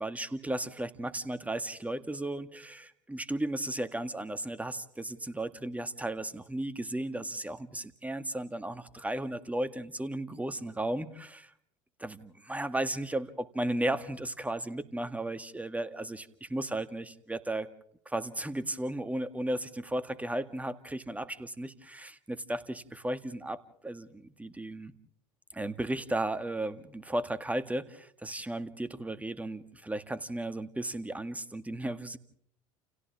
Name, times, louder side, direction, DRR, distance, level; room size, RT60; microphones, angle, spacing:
voice 1, 0.0-11.5 12.0-17.7 18.1-24.9 25.5-32.2, right 1 dB, 10° right, 12 dB, 1.9 m, -35 dB
29.5 x 29.5 x 3.5 m, 0.64 s
figure-of-eight pair, 75°, 18 cm